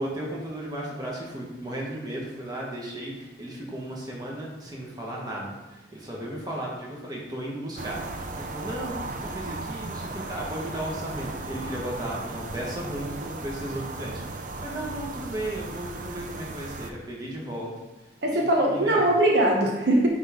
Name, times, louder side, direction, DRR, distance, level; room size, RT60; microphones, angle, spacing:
voice 1, 0.0-8.0 8.3-17.7 18.6-19.0, right 1 dB, 20° right, -4 dB, 1.5 m, -35 dB
sound 1, 7.8-16.9, right 2 dB, 45° right, 0.5 m, -36 dB
voice 2, 18.2-20.1, right 1 dB, 70° right, 0 dB, 1.0 m, -21 dB
9.4 x 3.5 x 3.8 m, 1.1 s
head